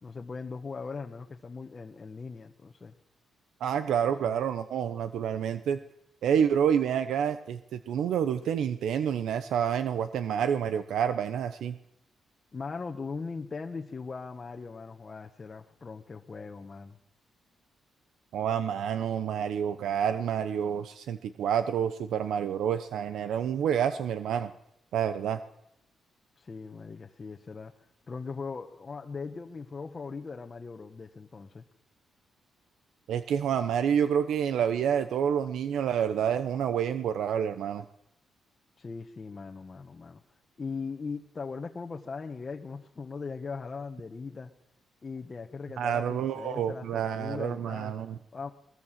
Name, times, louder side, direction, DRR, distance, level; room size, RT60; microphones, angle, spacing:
voice 1, 0.0-2.9 4.2-4.4 12.5-17.0 26.4-27.7 28.1-31.6 38.8-40.2 40.6-44.5 45.0-47.9 48.3-48.5, left 4 dB, 30° left, 2 dB, 1.4 m, -39 dB
voice 2, 3.6-5.8 6.2-11.8 18.3-24.5 24.9-25.4 33.1-37.8 45.8-48.2, right 8 dB, 85° right, 11 dB, 1.0 m, -28 dB
21.0 x 21.0 x 7.6 m, 0.77 s
cardioid pair, 125°, 0 cm